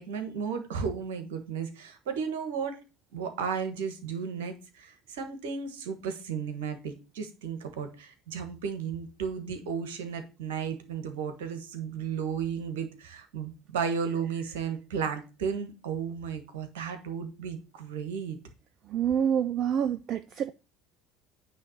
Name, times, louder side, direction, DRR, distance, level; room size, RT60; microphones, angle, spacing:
voice 1, 0.0-2.8 3.1-18.4, right 6 dB, 70° right, 1.4 m, -34 dB
voice 2, 18.9-20.5, right 8 dB, 50° right, 0.4 m, -27 dB
9.4 x 3.2 x 6.4 m
figure-of-eight pair, 65°, 0 cm